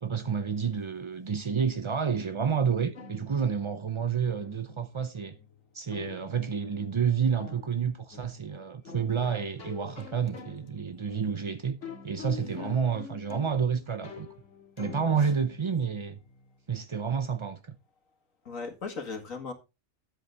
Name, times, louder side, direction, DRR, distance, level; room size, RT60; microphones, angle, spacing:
voice 1, 0.0-5.3 5.7-11.8 12.0-14.3 14.8-16.2 16.7-17.7, right 6 dB, 35° right, 0.4 m, -29 dB
sound 1, 2.9-16.5, left 4 dB, 65° left, 2.4 m, -47 dB
voice 2, 12.4-12.8 15.2-15.3 18.5-19.5, left 4 dB, 85° left, 2.4 m, -38 dB
11.0 x 7.9 x 3.4 m
omnidirectional pair, 1.4 m